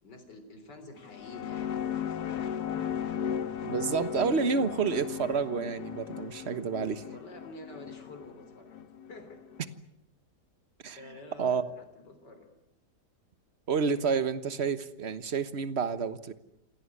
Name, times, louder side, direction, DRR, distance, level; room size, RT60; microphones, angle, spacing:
voice 1, 0.0-2.4 7.1-9.4 11.0-12.5, left 2 dB, 90° left, 8 dB, 4.1 m, -49 dB
sound 1, 1.0-9.6, left 8 dB, 70° left, 1.7 m, -36 dB
voice 2, 3.6-7.0 10.8-11.0 11.4-11.6 13.7-16.3, right 5 dB, 40° right, 12 dB, 1.5 m, -29 dB
27.5 x 18.0 x 9.8 m, 0.83 s
omnidirectional pair, 1.8 m